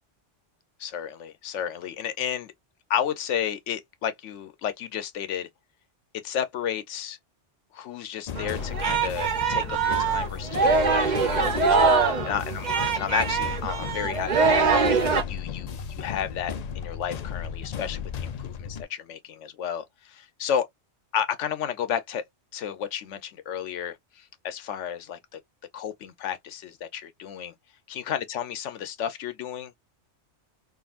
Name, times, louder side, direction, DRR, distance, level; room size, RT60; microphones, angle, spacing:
voice 1, 0.8-2.5 2.9-5.5 6.2-7.2 7.7-11.9 12.2-12.6 13.0-14.7 15.3-20.7 21.1-22.2 22.5-25.4 25.7-27.5 27.9-29.8, left 9 dB, 80° left, 1.0 m, -32 dB
sound 1, 8.3-18.8, left 7 dB, 60° left, 0.4 m, -35 dB
Singing, 8.4-15.2, right 4 dB, 45° right, 0.8 m, -23 dB
3.7 x 2.3 x 2.4 m
omnidirectional pair, 1.2 m